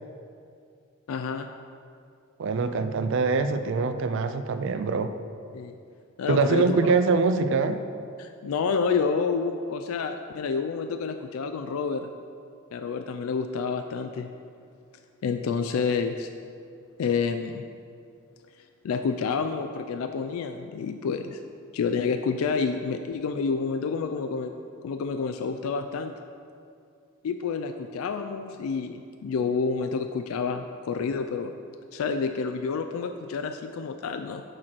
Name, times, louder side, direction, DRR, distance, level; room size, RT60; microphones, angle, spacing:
voice 1, 1.1-1.5 5.5-5.7 6.2-6.9 8.2-12.1 12.7-14.3 15.2-16.3 17.0-17.7 18.8-21.4 21.7-24.5 24.8-26.1 27.2-31.5 31.9-34.4, left 5 dB, 75° left, 7 dB, 0.3 m, -29 dB
voice 2, 2.4-5.1 6.3-7.8, right 4 dB, 60° right, 10 dB, 0.4 m, -24 dB
6.3 x 4.5 x 5.9 m, 2.4 s
head